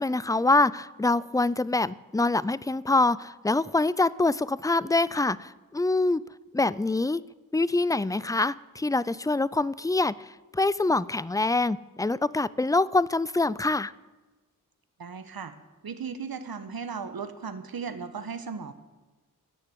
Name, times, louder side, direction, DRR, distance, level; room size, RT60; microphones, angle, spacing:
voice 1, 0.0-6.2 6.5-7.2 7.5-13.9, left 2 dB, 10° left, 19 dB, 0.5 m, -25 dB
voice 2, 15.0-15.5 15.8-18.7, right 5 dB, 75° right, 10 dB, 1.3 m, -36 dB
16.5 x 6.8 x 9.3 m, 1.2 s
cardioid pair, 40°, 36 cm